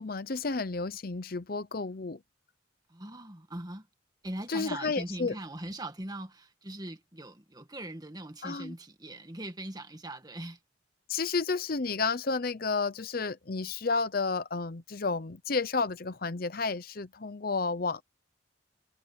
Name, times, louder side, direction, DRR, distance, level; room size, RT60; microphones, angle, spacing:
voice 1, 0.0-2.2 4.5-5.4 8.4-8.7 11.1-18.0, left 4 dB, 50° left, 0.7 m, -31 dB
voice 2, 2.9-3.9 4.2-10.6, right 1 dB, 20° right, 1.8 m, -41 dB
head